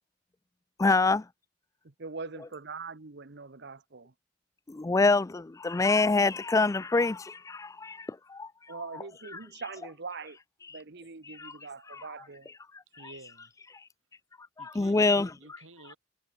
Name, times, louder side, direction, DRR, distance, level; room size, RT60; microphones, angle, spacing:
voice 1, 0.8-1.3 4.7-8.5 11.4-11.5 11.9-12.0 14.6-15.3, left 3 dB, 15° left, 0.3 m, -25 dB
voice 2, 1.8-4.1 8.7-10.4 10.7-12.5, right 4 dB, 60° right, 1.1 m, -42 dB
voice 3, 12.9-13.8 14.6-16.0, right 2 dB, 85° right, 4.4 m, -51 dB
head